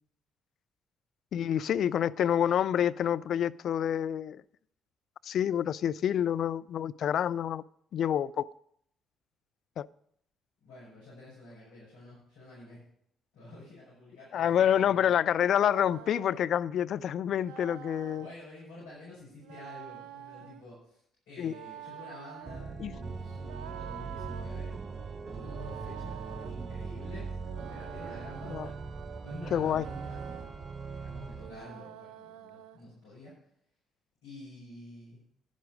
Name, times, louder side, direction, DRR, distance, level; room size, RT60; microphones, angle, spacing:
voice 1, 1.3-4.4 5.2-7.6 7.9-8.5 9.8-9.9 14.3-18.3 21.4-21.5 22.8-22.9 28.5-28.7 29.5-29.8, left 9 dB, 60° left, 0.3 m, -27 dB
voice 2, 10.6-12.8 13.3-15.1 18.2-24.8 25.3-28.8 29.1-30.6 30.8-33.3 34.2-35.2, left 2 dB, 75° left, 6.0 m, -49 dB
sound 1, 15.4-16.5 17.4-18.4 19.4-20.6 21.4-22.7 23.4-24.5 25.4-26.5 27.4-28.8 29.4-30.5 31.4-32.8, right 11 dB, 75° right, 0.5 m, -47 dB
Organ, 22.4-31.7, right 4 dB, 40° right, 1.0 m, -40 dB
10.5 x 10.5 x 5.1 m
hypercardioid pair, 45°, 0 cm